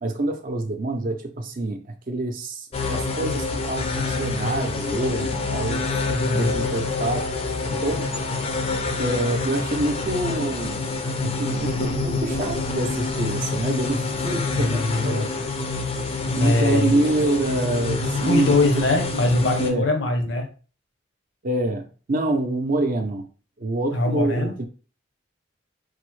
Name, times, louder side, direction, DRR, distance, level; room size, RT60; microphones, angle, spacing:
voice 1, 0.0-5.9 6.3-7.3 7.7-8.1 9.0-15.3 16.3-18.8 19.6-19.9 21.4-23.3 23.6-24.7, right 2 dB, 45° right, 0.5 m, -26 dB
sound 1, 2.7-19.7, left 3 dB, 30° left, 0.4 m, -27 dB
voice 2, 5.9-6.6 14.6-15.3 16.4-17.0 18.2-20.5 23.9-24.5, left 2 dB, 75° left, 0.8 m, -22 dB
4.8 x 2.0 x 3.1 m
head